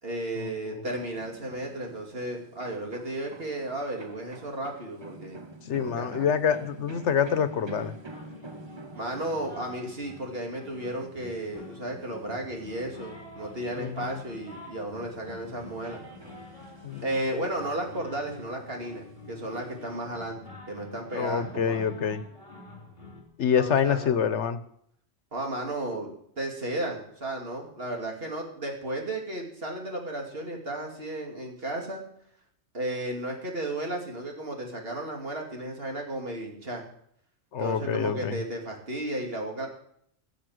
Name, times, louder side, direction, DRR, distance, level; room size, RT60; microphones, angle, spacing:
voice 1, 0.0-5.4 5.8-6.3 8.9-16.0 17.0-20.4 20.7-21.9 23.6-24.1 25.3-32.0 32.7-36.8 37.6-39.7, right 1 dB, 60° right, 1 dB, 2.9 m, -34 dB
sound 1, 0.8-13.9 14.3-18.0 18.4-20.1, right 3 dB, 25° right, 0.8 m, -49 dB
voice 2, 5.6-7.9 13.7-14.2 16.8-17.1 21.1-22.2 23.4-24.6 37.5-38.4, left 7 dB, 90° left, 12 dB, 1.3 m, -26 dB
sound 2, 7.2-23.2, left 2 dB, 45° left, 3.1 m, -47 dB
16.0 x 7.0 x 7.8 m, 0.69 s
omnidirectional pair, 1.1 m